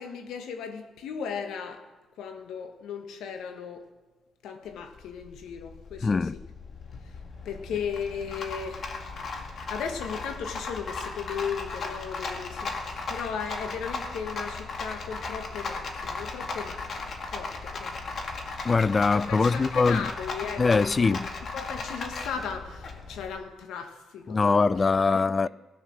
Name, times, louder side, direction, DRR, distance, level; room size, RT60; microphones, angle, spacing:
voice 1, 0.0-1.8 2.2-3.8 4.4-6.1 7.4-8.9 9.5-18.2 19.3-21.1 21.5-24.7, left 6 dB, 80° left, 1.5 m, -36 dB
Rattle, 4.7-23.3, left 3 dB, 50° left, 1.9 m, -36 dB
voice 2, 6.0-6.3 18.6-20.1 20.6-21.3 24.3-25.5, left 4 dB, 30° left, 0.3 m, -22 dB
17.0 x 9.4 x 6.3 m
cardioid pair, 90°, 0 cm